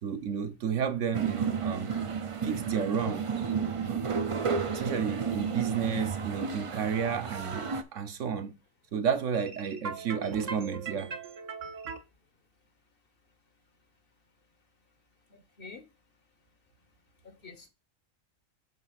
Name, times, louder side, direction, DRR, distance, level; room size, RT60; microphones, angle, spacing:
voice 1, 0.0-1.9 2.4-4.0 4.7-8.5 8.9-12.0, right 7 dB, 70° right, 1.2 m, -32 dB
sound 1, 1.1-7.8, right 6 dB, 40° right, 0.4 m, -32 dB
voice 2, 15.3-15.9 17.2-17.7, left 4 dB, 50° left, 1.0 m, -48 dB
7.5 x 3.3 x 5.9 m
omnidirectional pair, 1.4 m